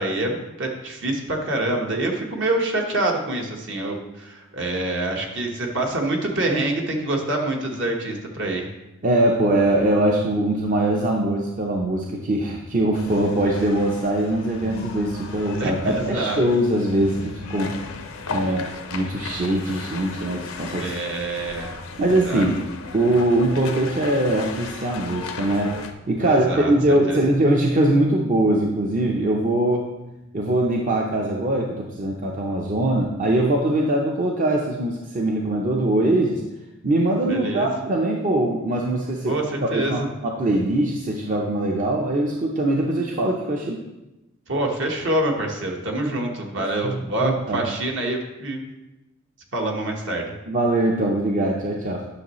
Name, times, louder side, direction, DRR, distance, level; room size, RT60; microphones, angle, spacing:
voice 1, 0.0-8.7 15.6-16.4 18.4-18.7 20.5-21.8 22.1-22.5 26.2-27.2 37.3-37.7 39.2-40.1 44.5-48.7 49.5-50.3, right 1 dB, 60° right, 1 dB, 1.2 m, -26 dB
voice 2, 9.0-17.7 18.3-20.9 22.0-22.6 22.9-25.8 26.1-29.9 30.3-36.4 36.8-39.4 39.7-43.8 46.6-47.6 50.5-52.0, right 1 dB, 40° right, 0 dB, 0.6 m, -22 dB
sound 1, 12.9-25.9, left 4 dB, 85° left, 0.7 m, -35 dB
9.7 x 6.3 x 3.1 m, 0.99 s
head